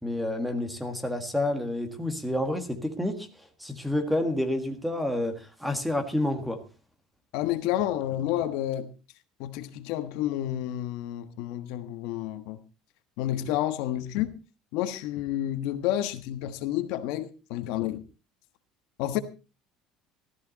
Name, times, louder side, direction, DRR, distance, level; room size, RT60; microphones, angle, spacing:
voice 1, 0.0-3.3 3.6-6.6, left 1 dB, ahead, 1.6 m, -29 dB
voice 2, 7.3-8.9 9.4-12.6 13.2-14.3 14.7-18.0 19.0-19.2, left 13 dB, 70° left, 1.3 m, -30 dB
14.5 x 13.5 x 4.0 m
cardioid pair, 170°, 0 cm